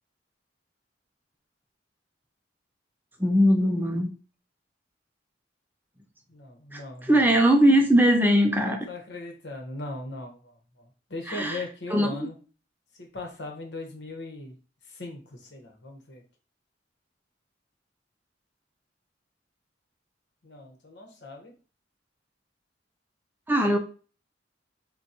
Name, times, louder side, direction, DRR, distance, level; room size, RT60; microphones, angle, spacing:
voice 1, 3.2-4.1 6.7-8.9 11.3-11.6 11.9-12.2 23.5-23.8, equal, 10° right, 4 dB, 0.4 m, -20 dB
voice 2, 6.3-7.3 8.6-12.3 12.9-14.5 14.9-16.2 20.4-21.5 23.6-23.8, left 2 dB, 65° left, 2 dB, 1.2 m, -39 dB
6.1 x 2.3 x 2.9 m, 0.37 s
head